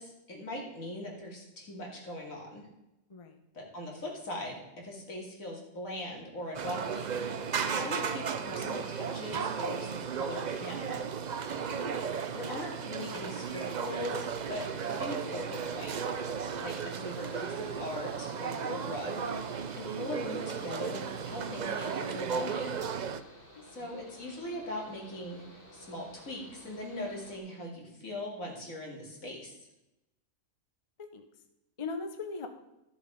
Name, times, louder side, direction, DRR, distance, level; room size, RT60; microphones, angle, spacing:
voice 1, 0.0-2.7 3.5-11.0 12.3-16.0 16.6-22.8 23.7-29.6, left 1 dB, 80° left, -1 dB, 3.1 m, -40 dB
sound 1, 6.5-23.2, right 6 dB, 50° right, 0.5 m, -35 dB
Mechanical fan, 14.2-27.4, left 1 dB, 40° left, 2.7 m, -54 dB
voice 2, 23.6-23.9 31.0-31.3 31.8-32.5, left 4 dB, 25° left, 7 dB, 0.8 m, -39 dB
13.0 x 7.2 x 5.1 m, 0.91 s
omnidirectional pair, 1.4 m